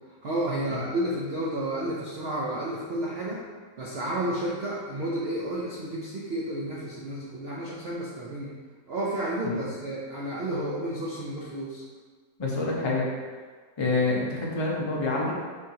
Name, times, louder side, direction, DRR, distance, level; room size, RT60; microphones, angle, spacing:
voice 1, 0.2-3.4 3.8-8.5 8.9-11.8, right 1 dB, 55° right, -5 dB, 0.7 m, -31 dB
voice 2, 12.4-13.1 13.8-15.3, left 3 dB, 35° left, -3 dB, 0.4 m, -27 dB
5.1 x 3.6 x 2.8 m, 1.5 s
omnidirectional pair, 1.7 m